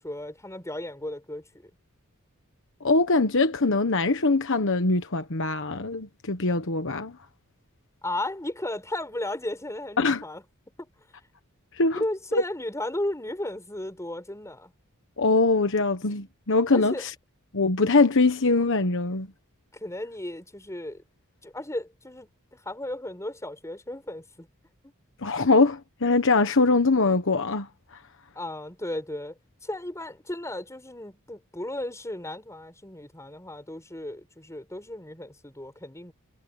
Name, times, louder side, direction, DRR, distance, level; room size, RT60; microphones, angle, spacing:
voice 1, 0.0-1.7 8.0-10.4 10.8-10.9 11.9-14.7 16.7-17.0 19.7-21.0 21.4-24.5 24.8-24.9 28.4-29.3 29.6-36.1, left 1 dB, 15° left, 5.4 m, -35 dB
voice 2, 2.8-7.2 10.0-10.2 11.8-12.0 12.3-12.4 15.2-17.1 17.5-19.3 25.2-27.7, left 3 dB, 60° left, 1.2 m, -22 dB
head